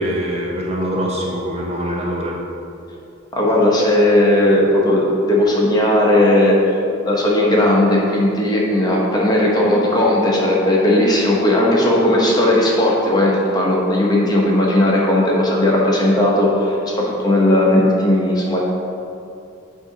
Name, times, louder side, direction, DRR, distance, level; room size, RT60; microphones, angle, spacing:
voice 1, 0.0-2.4, equal, 35° right, -2 dB, 0.7 m, -23 dB
voice 2, 3.3-6.8 7.1-18.6, left 1 dB, 20° left, -4 dB, 0.9 m, -16 dB
7.9 x 2.8 x 4.9 m, 2.6 s
head